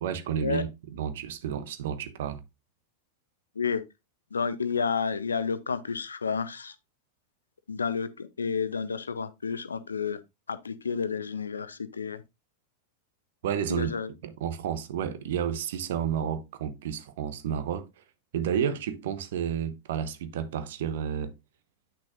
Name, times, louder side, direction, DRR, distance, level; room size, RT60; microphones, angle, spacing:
voice 1, 0.0-2.4 13.4-13.9 14.2-17.9 18.3-21.3, right 8 dB, 55° right, 0.8 m, -31 dB
voice 2, 4.3-6.8 7.7-10.2 10.5-12.2 13.7-14.1, left 5 dB, 75° left, 0.6 m, -30 dB
8.4 x 6.0 x 2.5 m
figure-of-eight pair, 90°, 0 cm